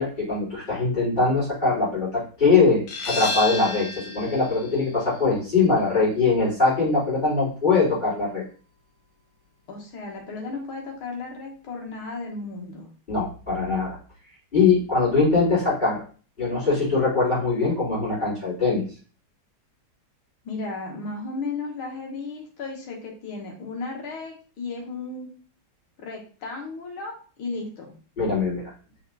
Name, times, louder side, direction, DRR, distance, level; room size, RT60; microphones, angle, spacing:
voice 1, 0.0-8.4 13.1-14.0 14.5-16.0 16.4-18.8 28.2-28.7, left 4 dB, 20° left, -14 dB, 3.9 m, -22 dB
sound 1, 2.9-8.3, left 3 dB, 60° left, 1.5 m, -34 dB
voice 2, 9.7-12.9 20.4-25.3 26.0-27.9, left 3 dB, 75° left, 0 dB, 2.4 m, -34 dB
5.8 x 4.4 x 4.2 m, 0.40 s
omnidirectional pair, 2.3 m